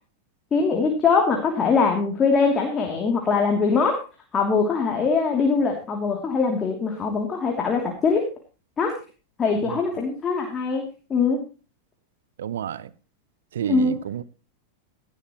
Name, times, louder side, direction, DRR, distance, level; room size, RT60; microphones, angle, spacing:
voice 1, 0.5-4.0 4.3-8.2 8.8-8.9 9.4-10.8 11.1-11.4 13.7-13.9, left 4 dB, 20° left, 2.9 m, -22 dB
voice 2, 12.4-12.9 13.5-14.2, right 10 dB, 60° right, 0.8 m, -30 dB
18.0 x 11.5 x 3.1 m
figure-of-eight pair, 90°, 0 cm